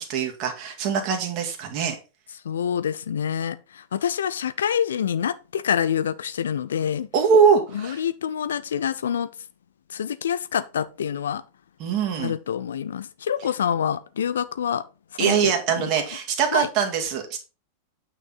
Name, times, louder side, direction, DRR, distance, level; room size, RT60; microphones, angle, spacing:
voice 1, 0.0-2.0 7.1-8.0 11.8-12.3 15.2-17.2, right 6 dB, 40° right, 2.1 m, -22 dB
voice 2, 2.4-7.1 7.7-9.3 9.9-11.4 12.2-14.8 15.2-15.9 16.5-16.7, left 8 dB, 65° left, 0.6 m, -26 dB
9.0 x 6.3 x 4.1 m
figure-of-eight pair, 90°, 0 cm